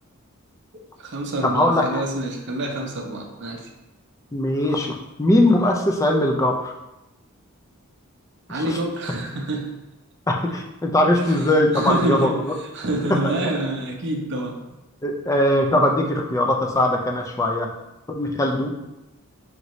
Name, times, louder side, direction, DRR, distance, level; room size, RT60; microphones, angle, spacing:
voice 1, 0.7-3.7 8.5-9.7 11.2-11.3 11.7-12.4 12.7-14.6, right 1 dB, 55° right, 1 dB, 0.6 m, -27 dB
voice 2, 1.4-2.0 4.3-6.7 8.6-8.8 10.3-12.5 13.2-13.4 15.0-17.7 18.1-18.7, left 1 dB, 15° left, 1 dB, 0.4 m, -20 dB
5.1 x 2.6 x 3.0 m, 0.96 s
head